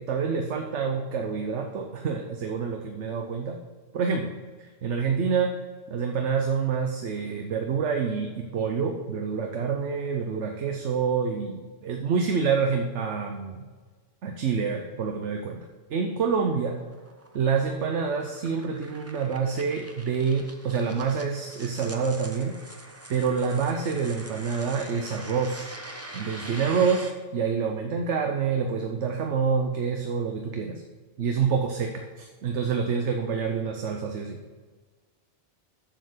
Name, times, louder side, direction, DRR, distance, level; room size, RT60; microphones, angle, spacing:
voice 1, 0.0-3.6 3.9-4.3 4.6-5.5 5.9-13.6 14.2-15.6 15.9-16.8 17.3-22.6 23.1-25.7 26.1-30.8 31.2-34.4, right 5 dB, 80° right, 3 dB, 1.1 m, -27 dB
sound 1, 16.4-27.1, right 1 dB, 15° right, 0.8 m, -44 dB
7.8 x 6.5 x 6.7 m, 1.4 s
omnidirectional pair, 1.2 m